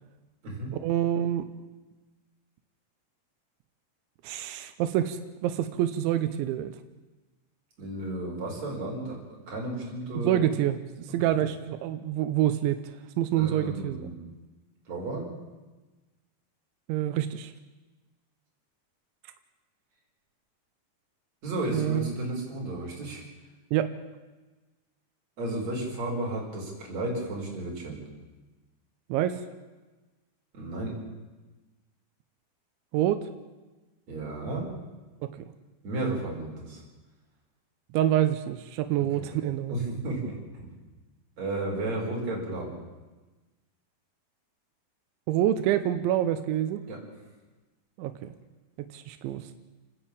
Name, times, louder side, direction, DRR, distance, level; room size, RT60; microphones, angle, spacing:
voice 1, 0.8-1.5 4.2-6.8 10.2-14.1 16.9-17.5 21.7-22.1 23.7-23.9 29.1-29.4 32.9-33.3 37.9-39.8 45.3-46.9 48.0-48.3 48.8-49.5, right 12 dB, 90° right, 9 dB, 3.2 m, -27 dB
voice 2, 7.8-10.4 13.4-14.2 14.9-15.3 21.4-23.3 25.4-28.0 30.5-31.0 34.1-34.7 35.8-36.8 39.2-39.3 39.7-40.7 41.4-42.7 46.9-47.0, right 2 dB, 35° right, -2 dB, 6.2 m, -33 dB
29.5 x 10.0 x 8.9 m, 1.2 s
omnidirectional pair, 5.2 m